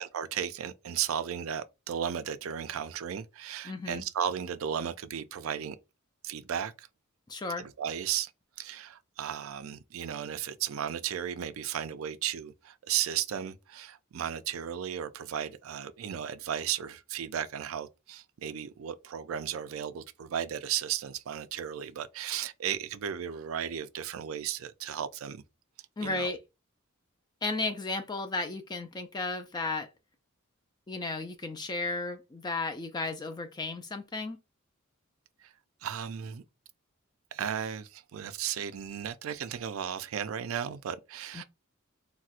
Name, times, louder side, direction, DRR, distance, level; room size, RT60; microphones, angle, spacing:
voice 1, 0.0-5.8 6.2-6.9 7.6-8.3 8.6-25.4 26.0-26.3 35.4-35.5 35.8-36.4 37.3-41.4, right 9 dB, 75° right, 0.4 m, -35 dB
voice 2, 3.7-4.0 7.3-7.7 26.0-26.4 27.4-29.9 30.9-34.4 41.3-41.4, left 3 dB, 20° left, 0.3 m, -34 dB
4.1 x 2.1 x 2.4 m
head